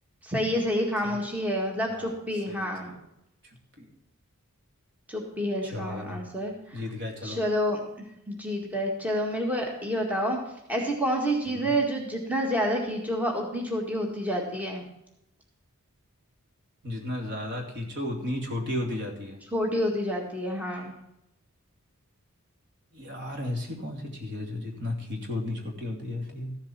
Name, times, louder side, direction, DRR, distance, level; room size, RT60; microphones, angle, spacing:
voice 1, 0.2-2.9 5.1-6.8 7.2-7.8 8.3-10.4 10.7-14.8 19.5-20.9, equal, 5° right, 0 dB, 1.8 m, -28 dB
voice 2, 2.5-2.9 3.4-3.9 5.6-6.2 6.7-7.4 11.5-11.7 16.8-19.4 22.9-26.6, left 1 dB, 55° right, 1 dB, 2.7 m, -34 dB
14.5 x 7.6 x 5.9 m, 0.82 s
head